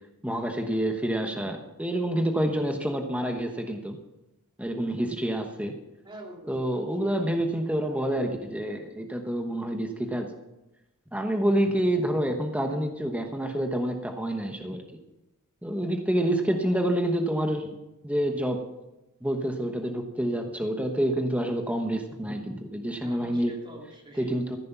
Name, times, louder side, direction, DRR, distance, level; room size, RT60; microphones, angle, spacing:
voice 1, 0.2-4.0 4.6-5.7 6.5-10.3 11.1-14.8 15.6-17.7 18.0-18.6 19.2-23.5 24.2-24.6, right 1 dB, 5° right, 4 dB, 1.1 m, -28 dB
voice 2, 6.0-6.9 23.0-24.3, right 1 dB, 20° right, 0 dB, 2.7 m, -45 dB
14.5 x 10.5 x 6.0 m, 0.96 s
head